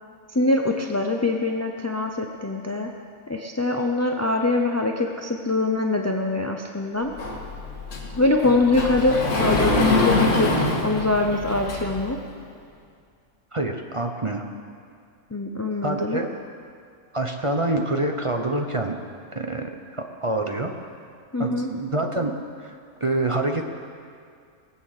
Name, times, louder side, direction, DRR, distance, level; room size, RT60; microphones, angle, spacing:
voice 1, 0.3-2.9 3.3-7.1 8.2-12.2 15.3-16.2 21.3-21.7, left 2 dB, 25° left, 3 dB, 0.3 m, -23 dB
Sliding door, 7.2-12.1, left 2 dB, 65° left, 2.0 m, -24 dB
voice 2, 13.5-14.4 15.8-16.3 17.1-19.0 19.3-20.7 21.4-22.3 22.6-22.8 23.0-23.6, right 2 dB, 30° right, 3 dB, 0.7 m, -26 dB
20.0 x 8.4 x 6.5 m, 2.2 s
omnidirectional pair, 1.4 m